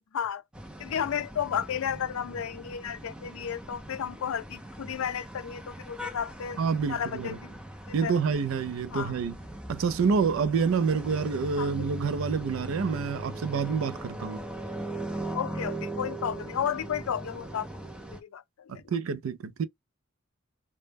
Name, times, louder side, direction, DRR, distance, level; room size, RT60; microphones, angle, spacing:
sound 1, 0.5-18.2, right 1 dB, 5° right, 0.4 m, -40 dB
voice 1, 0.8-6.6 6.9-7.6 7.9-8.1 8.9-9.2 11.6-11.8 15.3-17.8 18.1-18.8, left 8 dB, 85° left, 0.4 m, -33 dB
voice 2, 6.6-7.4 7.9-9.4 9.7-14.4 18.9-19.6, right 5 dB, 70° right, 0.4 m, -27 dB
2.1 x 2.0 x 3.2 m
head